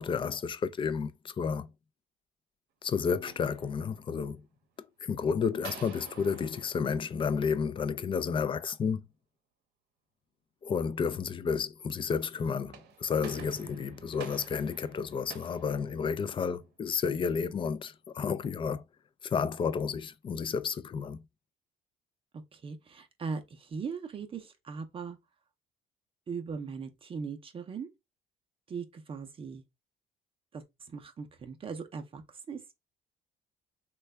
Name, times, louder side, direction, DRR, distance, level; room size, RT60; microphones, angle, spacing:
voice 1, 0.0-1.7 2.8-4.4 5.0-9.0 10.6-18.8 19.2-21.2, left 6 dB, 30° left, 0.3 m, -31 dB
sound 1, 3.3-4.3 5.6-8.1 12.5-16.6, right 7 dB, 80° right, 0.7 m, -50 dB
voice 2, 22.5-25.2 26.3-27.9 28.7-29.6 30.5-32.2 32.5-32.7, right 5 dB, 35° right, 0.5 m, -39 dB
3.3 x 2.3 x 3.2 m
cardioid pair, 110°, 17 cm